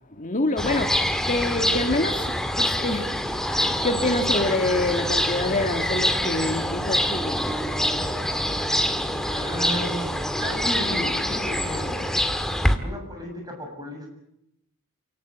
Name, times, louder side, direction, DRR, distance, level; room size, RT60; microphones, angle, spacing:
voice 1, 0.1-3.2 3.6-7.4, left 2 dB, 35° left, 1.9 m, -26 dB
sound 1, 0.6-12.8, equal, ahead, 1.9 m, -25 dB
voice 2, 9.2-12.1 12.8-14.1, equal, 20° right, 7.8 m, -33 dB
28.5 x 18.5 x 8.4 m
head